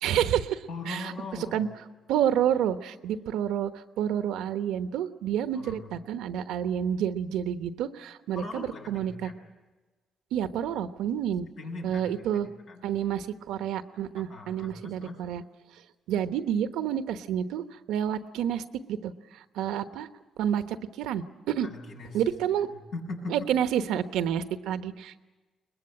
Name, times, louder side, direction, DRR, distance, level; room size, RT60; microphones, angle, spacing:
voice 1, 0.0-0.6 0.9-1.0 1.5-1.7 2.1-3.7 4.0-9.3 10.3-11.5 11.8-12.5 12.8-15.4 16.1-19.1 19.5-20.1 20.4-21.7 22.1-22.7 23.3-25.2, right 9 dB, 90° right, 10 dB, 1.1 m, -29 dB
voice 2, 0.7-1.6 5.5-5.9 8.3-9.4 11.6-12.9 14.1-15.2 21.6-22.4 22.7-23.5, left 2 dB, 75° left, 0 dB, 7.5 m, -40 dB
22.5 x 21.0 x 8.8 m, 1.2 s
cardioid pair, 90°, 0 cm